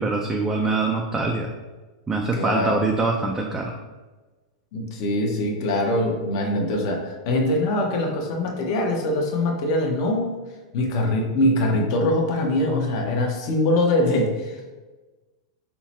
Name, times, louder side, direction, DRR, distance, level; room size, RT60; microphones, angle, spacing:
voice 1, 0.0-1.5 2.1-3.7, right 3 dB, 10° right, 0 dB, 0.4 m, -24 dB
voice 2, 2.3-2.8 4.7-10.4 10.7-14.7, left 1 dB, 55° left, 1 dB, 0.9 m, -23 dB
5.7 x 2.1 x 4.2 m, 1.2 s
supercardioid pair, 140°, 3 cm